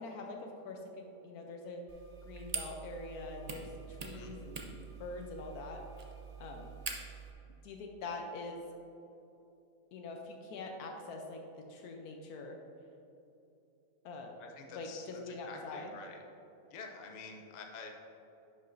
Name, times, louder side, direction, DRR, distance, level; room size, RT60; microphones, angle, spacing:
voice 1, 0.0-1.8 2.3-4.6 5.0-5.8 6.4-6.8 7.6-8.6 9.9-12.6 14.0-14.4 14.7-15.9, left 3 dB, 90° left, 2 dB, 1.2 m, -44 dB
sound 1, 1.9-7.3, right 5 dB, 45° right, 0.5 m, -45 dB
voice 2, 14.4-16.2 16.7-18.0, left 4 dB, 45° left, 2 dB, 0.5 m, -48 dB
10.5 x 5.9 x 2.6 m, 2.9 s
omnidirectional pair, 1.6 m